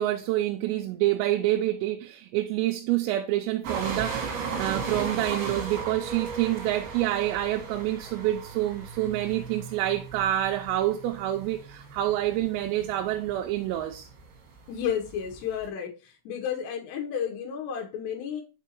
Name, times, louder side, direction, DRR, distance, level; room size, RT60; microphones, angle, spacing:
voice 1, 0.0-14.1, right 14 dB, 90° right, 3.3 m, -27 dB
sound 1, 3.6-15.7, right 5 dB, 55° right, 3.3 m, -37 dB
voice 2, 14.7-15.9 16.3-18.4, left 8 dB, 70° left, 2.8 m, -31 dB
6.6 x 5.2 x 3.0 m
omnidirectional pair, 5.9 m